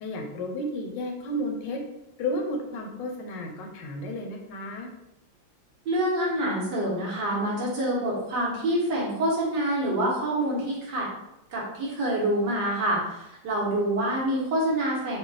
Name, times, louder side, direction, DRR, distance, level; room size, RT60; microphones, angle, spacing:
voice 1, 0.0-1.8 2.2-4.9, left 1 dB, 80° left, 2 dB, 1.3 m, -32 dB
voice 2, 5.9-11.1 11.5-15.2, right 1 dB, 70° right, -5 dB, 1.7 m, -26 dB
4.6 x 2.3 x 3.2 m, 0.89 s
omnidirectional pair, 2.0 m